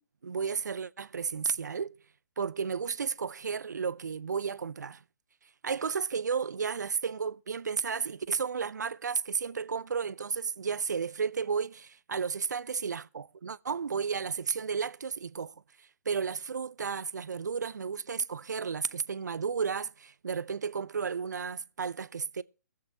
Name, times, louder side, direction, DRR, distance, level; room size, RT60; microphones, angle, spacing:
voice 1, 0.2-1.9 2.4-5.0 5.6-15.5 16.1-22.4, right 6 dB, 70° right, 0.5 m, -33 dB
22.5 x 7.8 x 2.8 m
figure-of-eight pair, 130°, 10 cm